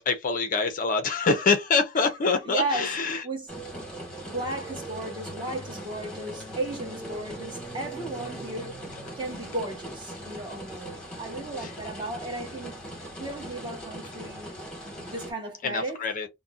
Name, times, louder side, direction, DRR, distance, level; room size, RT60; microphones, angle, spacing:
voice 1, 0.0-3.2 11.6-11.7 15.6-16.3, left 4 dB, 40° left, 0.4 m, -25 dB
voice 2, 2.2-3.0 3.2-3.6 4.2-8.8 9.2-12.9 13.2-16.0, right 2 dB, 20° right, 1.0 m, -35 dB
sound 1, 3.5-15.3, right 1 dB, 5° left, 1.2 m, -40 dB
2.5 x 2.0 x 3.5 m
head